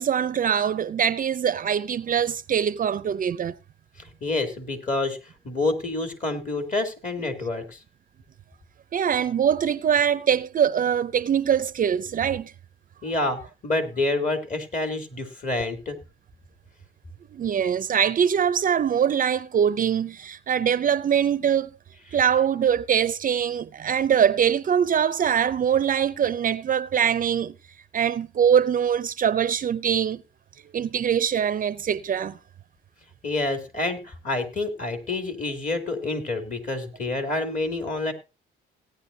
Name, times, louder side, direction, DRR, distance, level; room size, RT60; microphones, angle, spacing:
voice 1, 0.0-3.6 8.9-12.5 17.3-21.7 22.1-27.5 27.9-30.2 30.7-32.4, right 8 dB, 45° right, 0.5 m, -23 dB
voice 2, 4.0-5.2 5.4-7.8 13.0-15.9 33.2-38.1, left 2 dB, 40° left, 2.9 m, -28 dB
17.5 x 9.9 x 2.7 m
cardioid pair, 90°, 20 cm